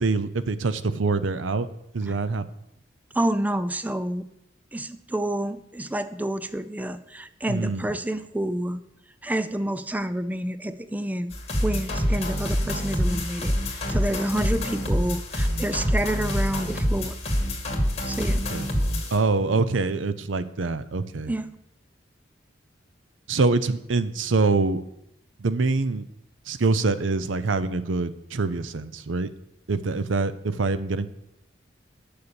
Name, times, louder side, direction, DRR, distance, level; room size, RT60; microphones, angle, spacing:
voice 1, 0.0-1.7 1.9-2.5 7.5-7.9 18.3-18.7 19.1-21.3 23.3-24.8 25.4-26.0 26.5-29.3 29.7-31.1, right 3 dB, 90° right, 14 dB, 0.7 m, -25 dB
voice 2, 3.1-4.3 4.7-8.8 9.2-11.3 11.6-17.2 18.0-18.5 21.3-21.6, right 1 dB, 10° right, 12 dB, 0.4 m, -29 dB
sound 1, 11.3-19.2, equal, 35° left, 2.3 m, -26 dB
9.6 x 6.8 x 7.0 m, 0.83 s
head